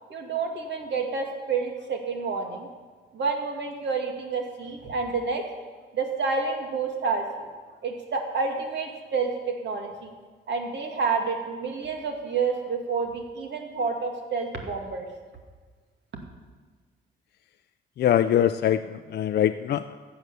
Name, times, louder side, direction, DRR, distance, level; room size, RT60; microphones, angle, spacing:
voice 1, 0.1-2.7 3.1-5.4 5.9-7.3 7.8-10.1 10.5-15.1, right 4 dB, 65° right, 3 dB, 2.2 m, -29 dB
voice 2, 18.0-20.0, left 10 dB, 55° left, 8 dB, 0.5 m, -23 dB
14.0 x 7.9 x 6.9 m, 1.4 s
cardioid pair, 90°, 20 cm